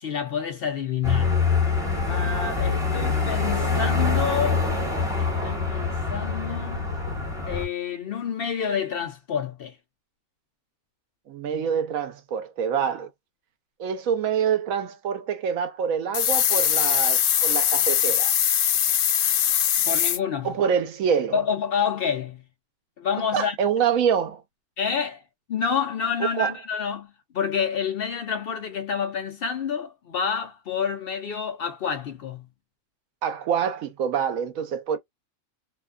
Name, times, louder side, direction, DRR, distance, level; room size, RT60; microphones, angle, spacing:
voice 1, 0.0-1.3 2.1-4.6 5.2-6.8 7.5-9.8 19.8-20.5 21.3-22.4 23.0-23.6 24.8-25.2 25.5-32.5, left 7 dB, 60° left, 0.6 m, -28 dB
sound 1, 1.0-7.7, left 4 dB, 5° right, 1.0 m, -25 dB
voice 2, 11.3-13.1 13.8-18.3 20.4-21.4 23.3-24.4 26.2-26.5 33.2-35.0, right 7 dB, 90° right, 1.1 m, -26 dB
sound 2, 16.1-20.2, left 10 dB, 85° left, 1.0 m, -21 dB
2.8 x 2.2 x 2.3 m
omnidirectional pair, 1.4 m